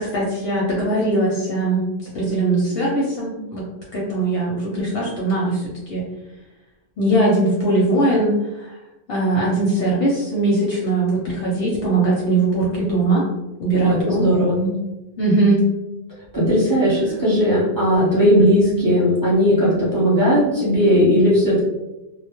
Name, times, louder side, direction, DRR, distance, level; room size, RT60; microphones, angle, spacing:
voice 1, 0.0-3.6 3.9-6.0 7.0-8.7 9.1-13.2 13.6-14.3 14.6-14.7 15.2-15.7, right 2 dB, 60° left, -4 dB, 0.7 m, -20 dB
voice 2, 13.8-14.6 16.3-21.6, equal, 20° right, -9 dB, 0.9 m, -17 dB
2.2 x 2.0 x 2.8 m, 1.0 s
omnidirectional pair, 1.2 m